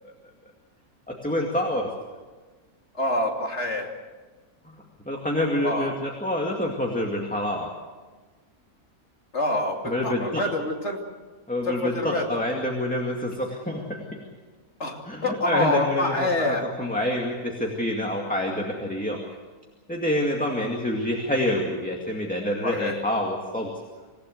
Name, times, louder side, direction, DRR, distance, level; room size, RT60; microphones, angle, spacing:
voice 1, 1.1-1.9 4.6-4.8 5.1-7.7 9.8-10.5 11.5-14.0 15.1-19.2 19.9-23.7, left 1 dB, 5° left, 0 dB, 2.2 m, -27 dB
voice 2, 2.9-3.9 5.6-5.9 9.3-9.8 10.0-11.0 11.6-12.4 14.8-16.6 22.6-23.0, left 2 dB, 50° left, 1 dB, 3.1 m, -26 dB
26.5 x 16.0 x 7.9 m, 1.3 s
omnidirectional pair, 1.6 m